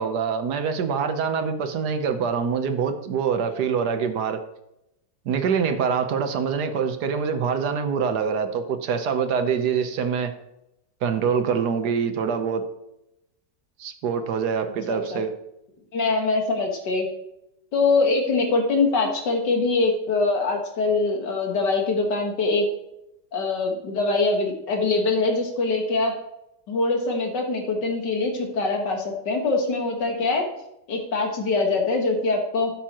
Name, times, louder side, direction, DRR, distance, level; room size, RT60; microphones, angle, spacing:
voice 1, 0.0-4.4 5.3-10.3 11.0-12.6 13.8-15.3, right 6 dB, 70° right, 8 dB, 1.4 m, -25 dB
voice 2, 14.9-15.2 15.9-17.1 17.7-22.7 23.3-26.2 26.7-30.5 30.9-32.7, left 3 dB, 85° left, 2 dB, 2.2 m, -23 dB
13.0 x 7.3 x 3.0 m, 0.85 s
omnidirectional pair, 1.8 m